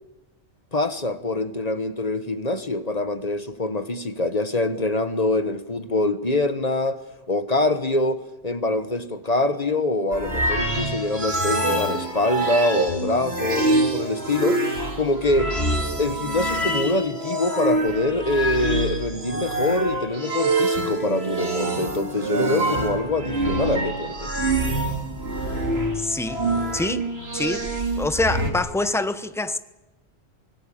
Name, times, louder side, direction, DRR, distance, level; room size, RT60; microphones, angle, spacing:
voice 1, 0.7-7.0 7.3-15.6 16.0-24.3, left 2 dB, 35° left, 1.3 m, -24 dB
sound 1, 10.1-28.5, right 2 dB, 60° right, 3.3 m, -25 dB
voice 2, 25.9-26.4 26.7-27.0 27.3-27.7 28.0-29.6, left 2 dB, 5° left, 0.8 m, -25 dB
25.0 x 18.5 x 8.6 m
omnidirectional pair, 1.2 m